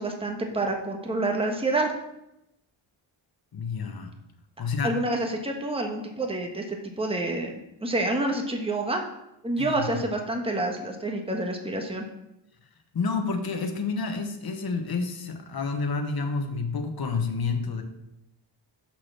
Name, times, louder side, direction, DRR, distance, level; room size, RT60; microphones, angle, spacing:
voice 1, 0.0-1.9 4.8-7.5 7.8-9.0 9.4-12.1, right 2 dB, 10° right, 2 dB, 1.3 m, -28 dB
voice 2, 3.5-4.1 4.6-5.0 9.6-10.1 12.9-17.8, left 4 dB, 50° left, 5 dB, 1.3 m, -29 dB
6.4 x 5.9 x 5.9 m, 0.86 s
cardioid pair, 95°, 48 cm